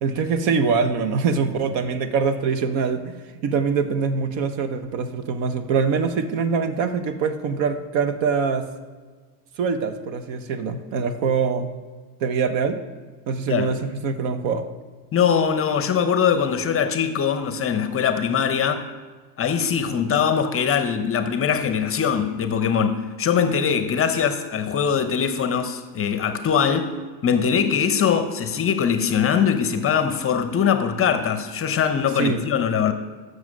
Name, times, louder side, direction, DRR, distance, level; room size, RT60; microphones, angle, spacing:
voice 1, 0.0-8.7 9.6-11.7 12.2-12.8 13.3-14.6 32.2-32.4, right 5 dB, 65° right, 1.0 m, -24 dB
voice 2, 15.1-18.9 19.4-26.9 27.2-32.9, left 7 dB, 30° left, 0.6 m, -22 dB
7.3 x 6.4 x 6.2 m
supercardioid pair, 100°, 49 cm